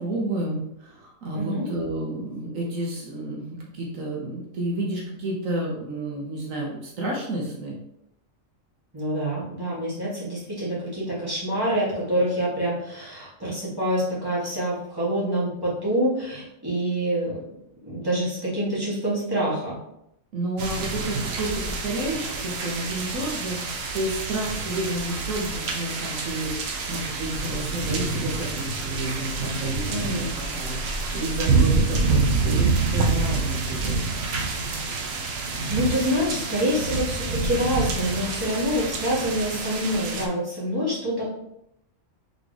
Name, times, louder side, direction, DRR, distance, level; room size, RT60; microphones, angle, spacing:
voice 1, 0.0-7.8 20.3-34.1, right 1 dB, 80° right, -2 dB, 1.4 m, -31 dB
voice 2, 1.3-1.7 8.9-17.4 17.8-19.8 29.9-30.3 35.7-41.3, equal, 15° right, -8 dB, 1.9 m, -26 dB
sound 1, 20.6-40.3, right 4 dB, 60° right, 0.8 m, -27 dB
4.4 x 3.5 x 3.3 m, 0.79 s
omnidirectional pair, 1.4 m